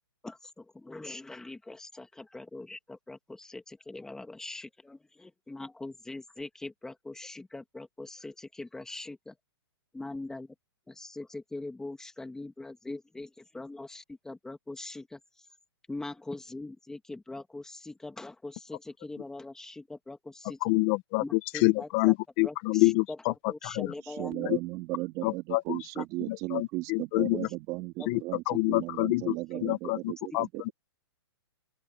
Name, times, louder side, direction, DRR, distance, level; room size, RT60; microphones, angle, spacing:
voice 1, 0.2-2.8 3.1-9.3 9.9-10.5 10.9-15.5 15.9-20.6 21.2-22.1 22.4-24.6 26.0-26.1 28.0-28.1 29.5-29.6, left 2 dB, 5° left, 1.9 m, -42 dB
voice 2, 20.6-23.3 23.6-23.9 25.2-25.8 26.5-27.5 28.1-28.2 28.5-29.3 29.6-30.7, left 22 dB, 30° left, 1.0 m, -27 dB
voice 3, 24.2-28.4 28.7-30.5, right 20 dB, 25° right, 3.2 m, -35 dB
open air
hypercardioid pair, 160°, 14 cm